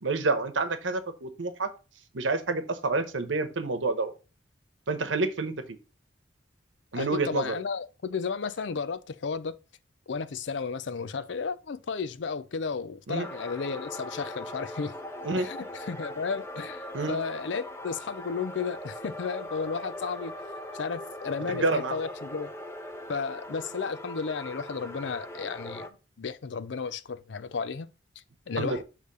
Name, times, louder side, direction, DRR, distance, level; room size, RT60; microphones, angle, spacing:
voice 1, 0.0-1.7 2.1-4.1 4.9-5.5 6.9-7.5 13.1-13.3 15.2-15.5 16.9-17.2 21.5-22.0 28.6-28.8, right 3 dB, 90° right, 1.0 m, -28 dB
voice 2, 7.0-9.6 10.1-15.0 15.4-20.3 20.7-22.5 23.1-25.9 26.2-27.9 28.5-28.8, left 5 dB, 75° left, 0.5 m, -33 dB
sound 1, 13.2-25.9, left 1 dB, 15° left, 0.6 m, -40 dB
6.6 x 3.3 x 5.2 m
head